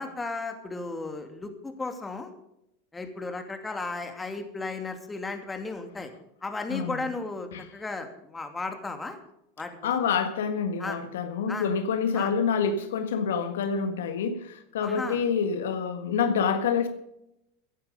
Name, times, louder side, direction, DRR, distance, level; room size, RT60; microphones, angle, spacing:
voice 1, 0.0-2.3 2.9-6.1 6.4-9.2 9.6-9.9 10.8-11.0 11.5-11.7 12.1-12.3 14.8-15.2, left 3 dB, 15° left, 2.7 m, -35 dB
voice 2, 6.7-7.1 7.5-7.7 9.8-16.9, left 6 dB, 75° left, 1.6 m, -27 dB
16.0 x 11.0 x 5.2 m
hypercardioid pair, 95°, 0 cm